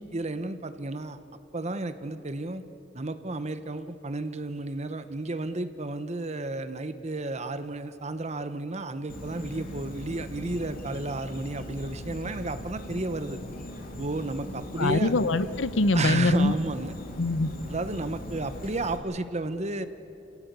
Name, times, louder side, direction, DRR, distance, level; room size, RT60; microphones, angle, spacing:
voice 1, 0.1-1.2 1.5-2.6 2.9-13.4 14.0-15.1 15.9-16.9 17.7-19.9, right 2 dB, 35° right, 11 dB, 1.0 m, -32 dB
Insect, 9.1-19.0, left 1 dB, 50° left, 3.1 m, -40 dB
voice 2, 14.8-16.5 17.2-17.5, left 2 dB, 85° left, 14 dB, 0.9 m, -23 dB
29.5 x 17.0 x 8.3 m, 2.9 s
head